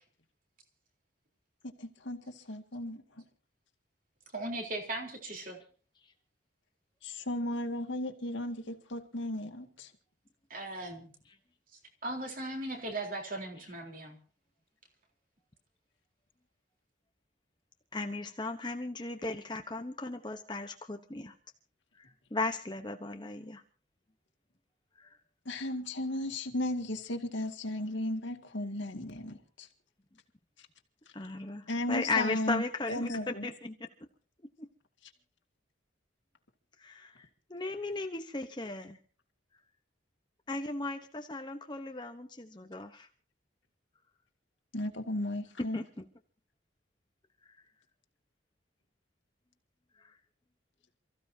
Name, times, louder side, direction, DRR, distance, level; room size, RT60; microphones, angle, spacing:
voice 1, 1.8-3.0 7.0-9.9 25.5-29.7 31.7-32.6 32.9-33.4 44.7-45.8, left 1 dB, 70° left, 4 dB, 2.2 m, -35 dB
voice 2, 4.3-5.6 10.5-11.1 12.0-14.2, right 2 dB, 45° right, 2 dB, 3.8 m, -38 dB
voice 3, 17.9-21.3 22.0-23.6 25.0-25.1 31.1-33.7 36.8-39.0 40.5-43.1 45.6-45.8 50.0-50.1, left 3 dB, 25° left, 5 dB, 1.0 m, -36 dB
28.5 x 15.0 x 2.8 m, 0.40 s
head